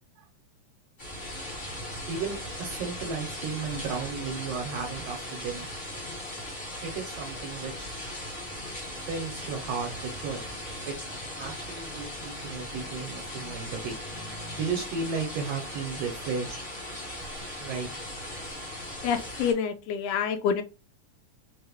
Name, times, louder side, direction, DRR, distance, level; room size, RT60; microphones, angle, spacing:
sound 1, 1.0-19.5, left 1 dB, 30° left, 1.0 m, -38 dB
voice 1, 2.1-5.7 6.8-7.9 9.1-10.4 10.8-10.9 11.4-14.0 14.6-16.6 17.6-17.9, right 5 dB, 70° right, 2 dB, 1.6 m, -34 dB
voice 2, 19.0-20.6, left 7 dB, 80° left, 8 dB, 1.5 m, -27 dB
5.5 x 2.1 x 3.4 m, 0.31 s
omnidirectional pair, 3.4 m